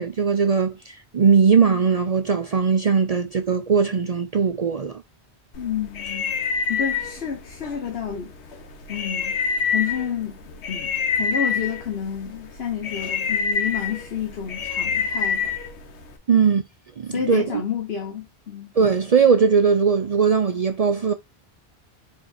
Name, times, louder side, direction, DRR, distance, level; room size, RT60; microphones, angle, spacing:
voice 1, 0.0-5.0 16.3-16.6 17.0-17.6 18.8-21.1, right 6 dB, 50° right, 0.5 m, -19 dB
sound 1, 5.5-16.2, left 6 dB, 85° left, 1.1 m, -27 dB
voice 2, 5.6-6.4 6.7-8.3 8.9-9.4 9.7-10.9 11.2-15.6 16.3-16.6 17.1-18.7, left 8 dB, 70° left, 1.3 m, -30 dB
4.5 x 4.3 x 2.5 m
omnidirectional pair, 1.1 m